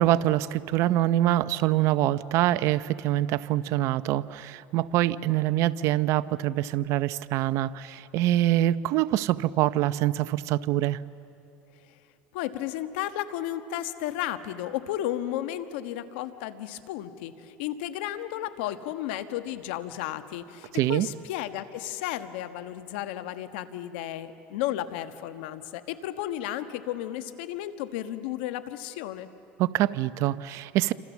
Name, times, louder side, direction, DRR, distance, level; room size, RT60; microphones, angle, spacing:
voice 1, 0.0-11.0 20.7-21.1 29.6-30.9, right 14 dB, 60° right, 15 dB, 0.7 m, -25 dB
voice 2, 12.3-29.3, left 12 dB, 80° left, 10 dB, 1.3 m, -33 dB
28.0 x 26.5 x 7.2 m, 2.7 s
supercardioid pair, 115°, 6 cm